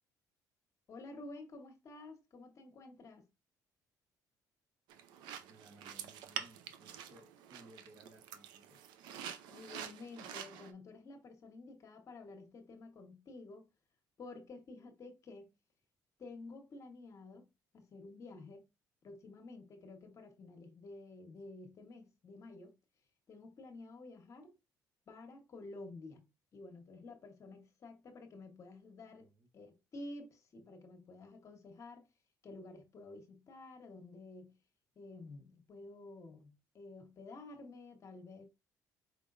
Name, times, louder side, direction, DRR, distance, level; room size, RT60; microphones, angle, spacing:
voice 1, 0.9-3.2 9.5-13.7 14.2-15.5 16.2-17.5 17.7-18.7 19.0-22.7 23.3-24.5 25.1-29.3 29.5-32.1 32.4-34.6 34.9-38.4, left 2 dB, 45° left, 1.2 m, -51 dB
sound 1, 4.9-10.7, right 9 dB, 90° right, 0.6 m, -47 dB
voice 2, 5.5-8.8 29.2-29.5, right 1 dB, 40° right, 1.3 m, -61 dB
4.8 x 3.6 x 2.6 m
cardioid pair, 110°, 7 cm